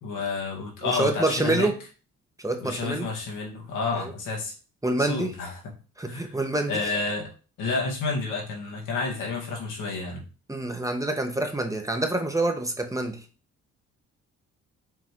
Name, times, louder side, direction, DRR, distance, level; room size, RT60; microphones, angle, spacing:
voice 1, 0.0-1.7 2.6-4.5 5.0-5.6 6.1-6.3 6.7-7.3 7.6-10.2, left 3 dB, 85° left, 0 dB, 2.0 m, -30 dB
voice 2, 0.8-1.7 2.4-3.1 4.0-4.1 4.8-5.3 6.0-6.9 10.5-13.2, right 2 dB, 10° right, 4 dB, 1.0 m, -27 dB
5.8 x 3.5 x 4.7 m, 0.35 s
cardioid pair, 90°, 30 cm